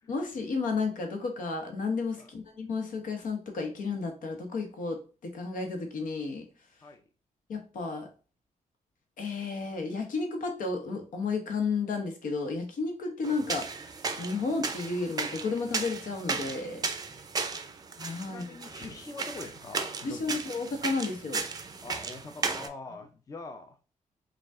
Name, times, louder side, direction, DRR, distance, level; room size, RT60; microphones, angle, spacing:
voice 1, 0.1-6.4 7.5-8.1 9.2-13.9 14.2-16.8 18.0-18.4 20.0-21.5, left 4 dB, 80° left, 4 dB, 1.1 m, -32 dB
sound 1, 13.2-22.7, right 4 dB, 30° right, 0.4 m, -35 dB
voice 2, 18.2-20.5 21.8-23.8, left 3 dB, 25° left, 5 dB, 0.5 m, -44 dB
5.0 x 2.4 x 3.6 m, 0.36 s
wide cardioid pair, 150°, 14 cm